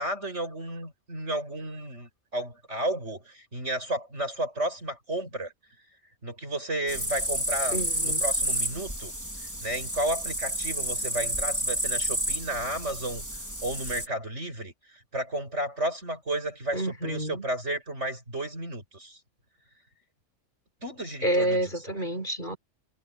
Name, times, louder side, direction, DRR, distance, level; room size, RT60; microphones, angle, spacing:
voice 1, 0.0-5.5 6.2-9.1 9.6-13.2 13.6-19.2 20.8-21.6, right 1 dB, 65° right, 7.8 m, -32 dB
sound 1, 6.9-14.1, equal, 15° right, 4.4 m, -30 dB
voice 2, 7.7-8.2 16.7-17.5 21.2-22.6, right 1 dB, 40° left, 7.5 m, -29 dB
omnidirectional pair, 1.3 m